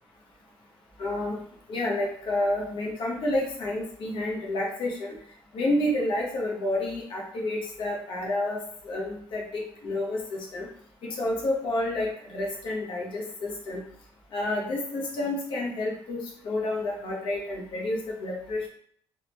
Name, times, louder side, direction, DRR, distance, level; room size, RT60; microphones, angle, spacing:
voice 1, 1.0-1.4 1.7-5.1 5.5-8.6 8.8-9.4 9.8-10.7 11.0-13.8 14.3-18.7, left 1 dB, 65° left, -2 dB, 1.2 m, -29 dB
3.8 x 3.0 x 3.2 m, 0.62 s
cardioid pair, 135°, 9 cm